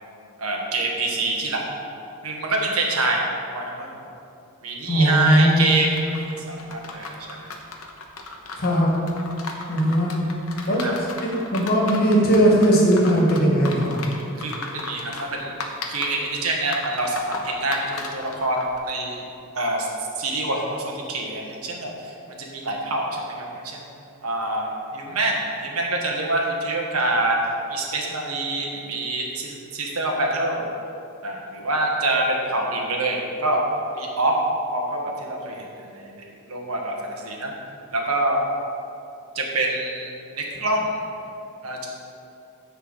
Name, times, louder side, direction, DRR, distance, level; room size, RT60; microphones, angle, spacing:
voice 1, 0.4-1.6 2.2-3.3 3.5-4.0 4.6-5.9 6.2-7.5 10.6-10.9 14.4-15.5 15.9-19.2 19.5-19.9 20.2-23.8 24.2-27.4 27.7-30.6 31.2-33.6 33.9-34.3 34.7-35.7 35.9-37.5 37.9-38.4 39.3-41.0 41.6-41.9, right 2 dB, 85° right, 0 dB, 1.6 m, -26 dB
voice 2, 4.9-5.7 8.5-8.9 9.7-10.2 10.6-10.9 11.2-14.0, right 1 dB, 45° left, -3 dB, 2.0 m, -18 dB
sound 1, 5.9-18.8, left 3 dB, 75° left, 1.0 m, -36 dB
10.5 x 4.5 x 7.4 m, 2.7 s
head